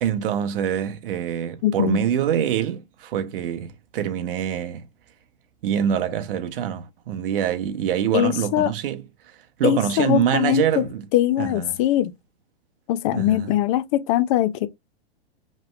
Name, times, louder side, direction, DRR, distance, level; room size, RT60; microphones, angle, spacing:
voice 1, 0.0-4.8 5.6-11.0 11.4-11.8 13.1-13.5, right 9 dB, 55° right, 0.9 m, -25 dB
voice 2, 1.6-2.0 8.1-8.7 9.6-10.8 11.1-12.1 12.9-14.7, left 13 dB, 30° left, 0.4 m, -21 dB
5.0 x 3.2 x 2.4 m
hypercardioid pair, 135°, 32 cm